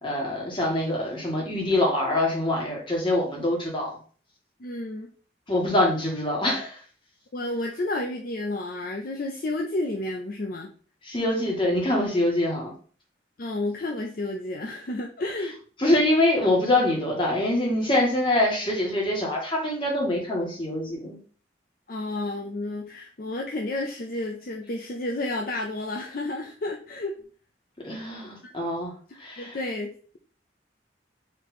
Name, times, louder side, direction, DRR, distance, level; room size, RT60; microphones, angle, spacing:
voice 1, 0.0-3.9 5.5-6.8 11.0-12.7 15.8-21.2 27.8-28.9 29.2-29.6, left 1 dB, 30° left, -1 dB, 1.5 m, -24 dB
voice 2, 4.6-5.1 7.3-10.7 13.4-15.6 21.9-27.2 29.4-30.2, left 2 dB, 50° left, 1 dB, 0.5 m, -31 dB
4.5 x 2.9 x 4.1 m, 0.42 s
head